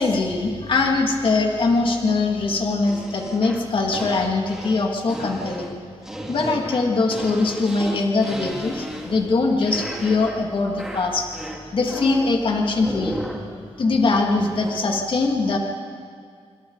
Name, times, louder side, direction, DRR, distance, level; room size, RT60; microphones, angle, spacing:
voice 1, 0.0-5.8 6.3-13.2 13.8-15.6, left 3 dB, 55° left, 1 dB, 2.4 m, -22 dB
sound 1, 2.8-9.3 9.6-10.5 10.8-12.4 12.8-13.5 14.6-14.8, right 1 dB, 5° right, 2.4 m, -34 dB
26.5 x 24.5 x 4.1 m, 2.1 s
wide cardioid pair, 115°, 11 cm